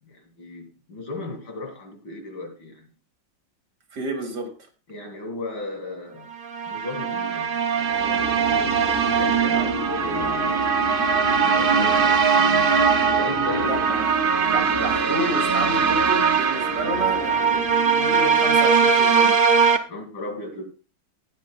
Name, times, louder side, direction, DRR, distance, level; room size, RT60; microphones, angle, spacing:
voice 1, 0.1-2.9 4.9-6.3 6.7-8.8 9.2-10.6 11.4-14.1 16.5-16.7 19.9-20.7, left 2 dB, 90° left, 3.4 m, -36 dB
voice 2, 3.9-4.6 13.6-17.6 17.9-19.4, right 1 dB, 60° right, 2.6 m, -30 dB
sound 1, 6.4-19.8, right 6 dB, 75° right, 0.5 m, -21 dB
sound 2, 7.6-18.7, equal, 40° right, 3.1 m, -32 dB
16.5 x 9.7 x 2.3 m
omnidirectional pair, 2.1 m